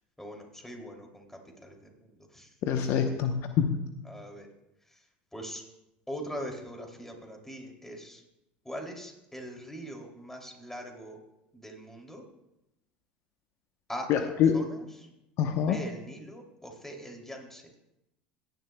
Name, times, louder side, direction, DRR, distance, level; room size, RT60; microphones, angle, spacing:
voice 1, 0.2-1.2 1.6-1.7 2.3-2.5 4.1-4.5 5.3-5.6 6.1-8.2 8.6-11.2 11.5-12.2 13.9-14.6 15.5-17.6, equal, 5° left, 2 dB, 2.7 m, -41 dB
voice 2, 2.6-3.8 14.1-14.6 15.4-15.8, left 8 dB, 55° left, 6 dB, 0.8 m, -25 dB
17.0 x 10.5 x 2.2 m, 0.88 s
hypercardioid pair, 80°, 5 cm